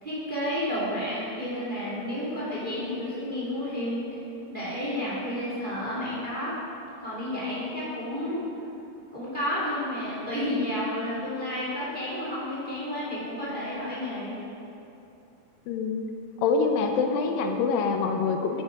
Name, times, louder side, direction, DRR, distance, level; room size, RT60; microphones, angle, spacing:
voice 1, 0.0-4.2 4.5-6.5 7.0-8.4 9.1-14.3, left 1 dB, 15° right, -8 dB, 2.2 m, -31 dB
voice 2, 15.7-16.1 16.4-18.6, left 4 dB, 85° left, 4 dB, 2.5 m, -25 dB
9.8 x 9.7 x 4.8 m, 2.8 s
omnidirectional pair, 4.0 m